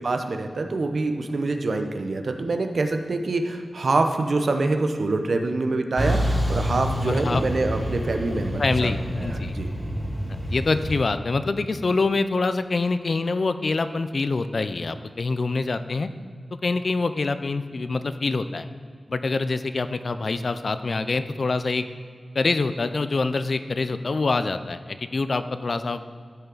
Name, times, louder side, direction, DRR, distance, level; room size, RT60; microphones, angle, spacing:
voice 1, 0.0-9.7, right 3 dB, 65° right, 6 dB, 0.7 m, -25 dB
Truck, 6.0-11.0, equal, 30° left, 2.1 m, -27 dB
voice 2, 7.0-7.4 8.6-9.5 10.5-16.1 16.6-18.7 19.1-21.8 22.3-26.0, left 3 dB, 55° left, 11 dB, 0.4 m, -25 dB
13.5 x 5.6 x 3.9 m, 2.1 s
wide cardioid pair, 100°, 0 cm